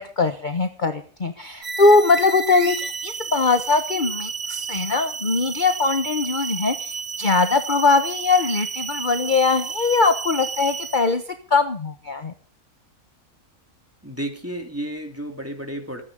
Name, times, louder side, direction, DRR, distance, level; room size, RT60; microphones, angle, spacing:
voice 1, 0.0-11.2 11.5-12.3, left 3 dB, 35° left, 8 dB, 1.3 m, -21 dB
sound 1, 1.6-11.2, right 5 dB, 35° right, 0.8 m, -31 dB
voice 2, 14.0-16.0, right 1 dB, 10° right, 3 dB, 3.3 m, -32 dB
27.0 x 9.9 x 3.8 m, 0.40 s
omnidirectional pair, 1.6 m